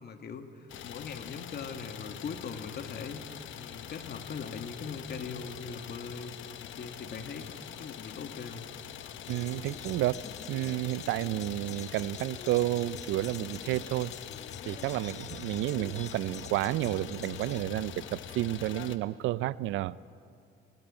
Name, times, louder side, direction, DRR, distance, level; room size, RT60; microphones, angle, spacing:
voice 1, 0.0-3.2 3.6-6.3 6.6-7.5 7.8-8.7, left 5 dB, 55° left, 7 dB, 1.9 m, -40 dB
Idling, 0.7-19.0, left 10 dB, 80° left, 1.1 m, -44 dB
sound 1, 9.2-17.6, left 8 dB, 35° left, 0.4 m, -47 dB
voice 2, 9.3-10.2 10.5-14.1 14.7-20.1, right 15 dB, 90° right, 19 dB, 0.5 m, -31 dB
21.0 x 17.5 x 8.8 m, 2.4 s
cardioid pair, 90°, 20 cm